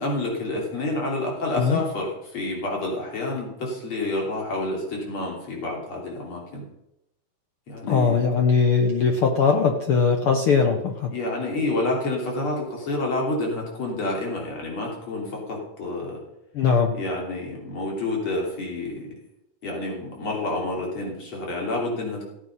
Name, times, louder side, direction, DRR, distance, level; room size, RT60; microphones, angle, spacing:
voice 1, 0.0-6.6 7.7-8.2 11.1-16.2 16.9-19.1 19.6-22.3, left 2 dB, 40° left, -1 dB, 4.2 m, -29 dB
voice 2, 7.9-11.1 16.5-16.9, left 5 dB, 65° left, 3 dB, 1.4 m, -20 dB
16.0 x 8.6 x 5.5 m, 0.87 s
omnidirectional pair, 3.8 m